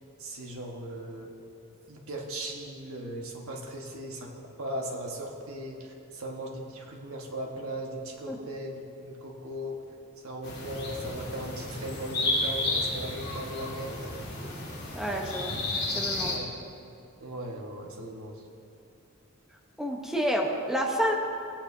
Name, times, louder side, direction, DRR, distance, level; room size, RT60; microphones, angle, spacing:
voice 1, 0.2-1.3 1.9-5.8 6.1-9.8 10.2-14.1 16.3-16.5 17.2-18.4, right 1 dB, 85° right, 0 dB, 1.4 m, -38 dB
sound 1, 10.4-16.4, left 2 dB, 50° left, 2.3 m, -32 dB
voice 2, 14.9-15.5 15.9-16.5 19.8-21.1, equal, ahead, 0 dB, 0.9 m, -29 dB
17.5 x 8.7 x 2.7 m, 2.6 s
head